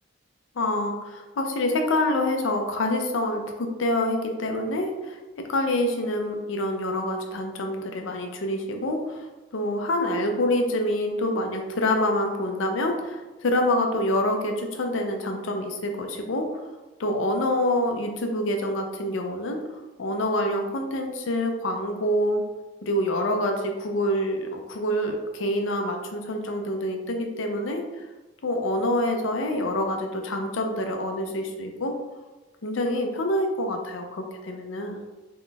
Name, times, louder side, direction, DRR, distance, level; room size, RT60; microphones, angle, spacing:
voice 1, 0.6-9.3 9.5-16.5 17.0-19.6 20.0-22.4 22.8-27.8 28.4-32.0 32.6-35.0, left 1 dB, 85° left, 3 dB, 0.5 m, -26 dB
3.8 x 2.9 x 2.3 m, 1.1 s
head